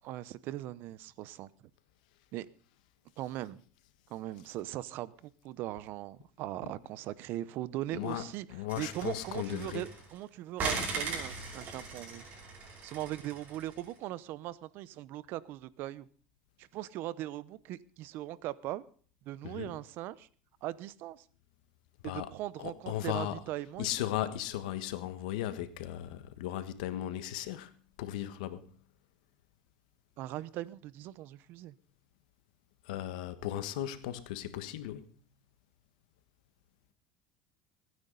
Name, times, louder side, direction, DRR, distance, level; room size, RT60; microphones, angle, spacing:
voice 1, 0.0-1.5 2.3-2.5 3.2-3.6 4.1-8.5 8.8-12.2 12.8-16.1 16.6-18.8 19.3-20.3 20.6-21.2 22.0-24.1 30.2-31.7, right 14 dB, 60° right, 0.8 m, -40 dB
voice 2, 7.9-8.3 8.5-9.8 19.4-19.7 22.0-22.3 22.6-23.4 23.8-27.7 28.0-28.6 32.9-35.0, left 13 dB, 90° left, 1.4 m, -36 dB
sound 1, 8.7-10.2 10.6-13.8, right 4 dB, 40° right, 5.7 m, -39 dB
23.0 x 9.7 x 4.0 m
supercardioid pair, 125°, 4 cm